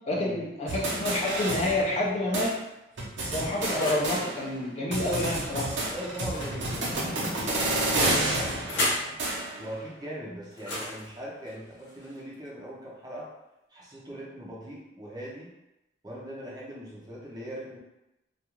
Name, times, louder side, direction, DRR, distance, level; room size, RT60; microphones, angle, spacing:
voice 1, 0.1-2.6 3.3-5.8, left 1 dB, 35° left, -3 dB, 0.4 m, -28 dB
sound 1, 0.7-2.1 2.3-2.5 3.0-4.6 4.9-9.7, right 1 dB, 75° right, 0.7 m, -30 dB
sound 2, 1.8-1.9 2.5-4.2 6.2-7.3 8.1-9.1 10.5-12.5, left 1 dB, 85° left, 0.8 m, -36 dB
voice 2, 5.9-9.2 9.6-13.3 13.7-15.5 16.0-17.8, equal, 20° right, -4 dB, 0.5 m, -40 dB
2.3 x 2.3 x 2.9 m, 0.93 s
head